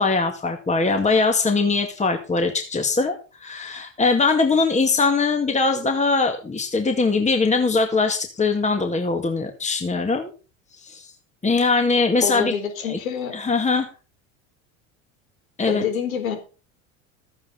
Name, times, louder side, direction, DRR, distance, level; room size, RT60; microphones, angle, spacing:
voice 1, 0.0-3.2 3.4-10.3 10.7-11.1 11.4-12.5 12.8-13.0 13.3-13.9 15.6-15.9, left 4 dB, 15° left, 5 dB, 2.1 m, -21 dB
voice 2, 12.2-13.4 15.7-16.4, left 7 dB, 85° left, 6 dB, 4.0 m, -26 dB
14.0 x 9.5 x 4.1 m, 0.34 s
hypercardioid pair, 85°, 40 cm